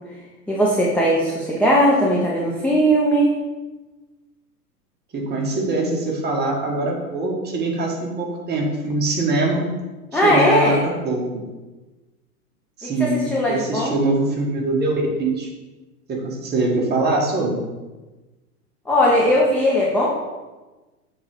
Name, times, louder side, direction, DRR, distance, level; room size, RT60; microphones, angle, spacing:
voice 1, 0.5-3.3 10.1-10.8 13.3-14.0 18.9-20.2, equal, 5° left, -5 dB, 0.7 m, -18 dB
voice 2, 5.1-9.7 10.1-11.4 12.8-14.9 15.2-15.5 16.1-17.6, right 2 dB, 20° right, -2 dB, 1.6 m, -23 dB
7.2 x 3.9 x 4.9 m, 1.2 s
figure-of-eight pair, 100°, 48 cm